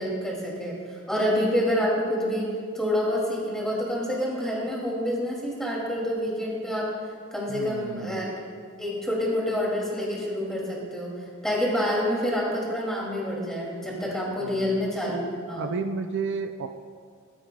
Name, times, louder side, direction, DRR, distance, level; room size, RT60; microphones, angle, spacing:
voice 1, 0.0-6.9 7.3-8.3 8.8-11.1 11.4-15.2 15.5-15.7, equal, ahead, -4 dB, 2.5 m, -27 dB
voice 2, 7.5-8.3 14.4-14.8 15.5-16.7, right 4 dB, 60° right, 7 dB, 0.4 m, -32 dB
15.0 x 12.5 x 2.3 m, 2.2 s
head